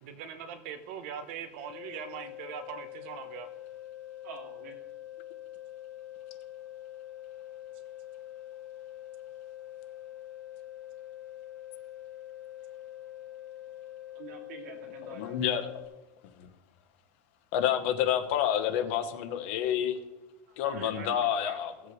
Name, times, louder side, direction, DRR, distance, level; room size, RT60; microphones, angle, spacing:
voice 1, 0.0-3.5, right 7 dB, 50° right, 9 dB, 1.0 m, -41 dB
sound 1, 1.6-15.9, left 13 dB, 10° right, 2.4 m, -45 dB
voice 2, 4.2-4.8 14.1-15.4 18.9-19.0 20.5-21.6, right 5 dB, 80° right, 1 dB, 2.4 m, -46 dB
voice 3, 15.0-15.8 16.4-16.5 17.5-20.0 20.6-21.7, left 10 dB, 50° left, 8 dB, 1.0 m, -29 dB
16.5 x 7.8 x 3.2 m, 1.1 s
supercardioid pair, 180°, 8 cm